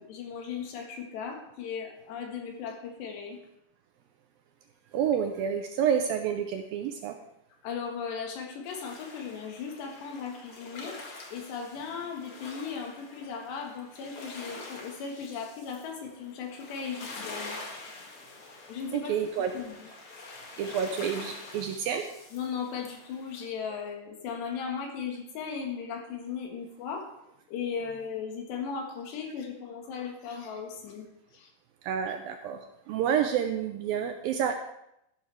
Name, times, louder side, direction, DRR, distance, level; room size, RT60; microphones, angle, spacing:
voice 1, 0.0-3.4 7.6-11.0 11.3-17.6 18.7-19.1 19.5-19.8 22.3-27.1 27.5-31.1 31.3-31.5 32.1-32.2, left 6 dB, 85° left, 2 dB, 3.9 m, -37 dB
voice 2, 4.9-7.2 19.1-19.5 20.6-22.1 31.8-34.5, right 8 dB, 80° right, 5 dB, 2.2 m, -29 dB
sound 1, 8.6-23.5, left 3 dB, 45° left, 1.9 m, -46 dB
13.0 x 11.5 x 3.5 m, 0.80 s
omnidirectional pair, 4.8 m